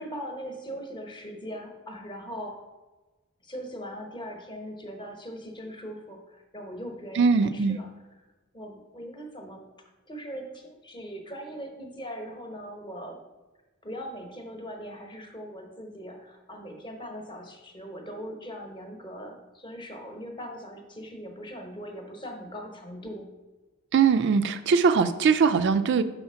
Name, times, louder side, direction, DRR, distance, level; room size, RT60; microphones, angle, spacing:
voice 1, 0.0-2.6 3.4-7.9 8.5-9.7 10.1-13.2 13.8-23.3, equal, 20° left, 3 dB, 0.9 m, -40 dB
voice 2, 7.2-7.8 23.9-26.0, right 5 dB, 55° right, 11 dB, 0.3 m, -21 dB
5.6 x 4.2 x 5.5 m, 1.2 s
head